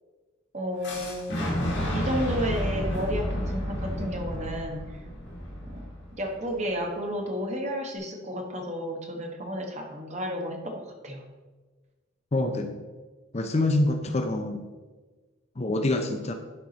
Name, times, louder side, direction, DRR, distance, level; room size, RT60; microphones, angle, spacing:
voice 1, 0.5-1.3 1.9-4.9 5.7-5.8 6.2-11.2, equal, 35° right, 2 dB, 1.2 m, -32 dB
Fire / Explosion, 0.8-6.7, equal, 60° left, 1.9 m, -31 dB
voice 2, 12.3-12.7 13.3-14.7 15.6-16.3, left 2 dB, 30° left, 6 dB, 0.6 m, -26 dB
11.0 x 4.7 x 4.0 m, 1.3 s
head